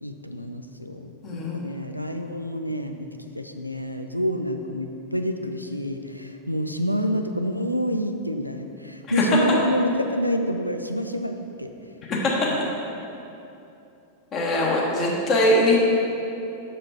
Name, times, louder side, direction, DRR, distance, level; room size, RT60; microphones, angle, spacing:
voice 1, 0.0-3.1 3.3-11.7 12.4-12.6, equal, 90° left, 6 dB, 0.4 m, -28 dB
voice 2, 1.2-1.7 9.1-9.2 12.1-12.5 14.3-15.8, left 1 dB, 30° left, -3 dB, 1.3 m, -22 dB
6.5 x 5.1 x 4.3 m, 2.8 s
figure-of-eight pair, 90°, 0 cm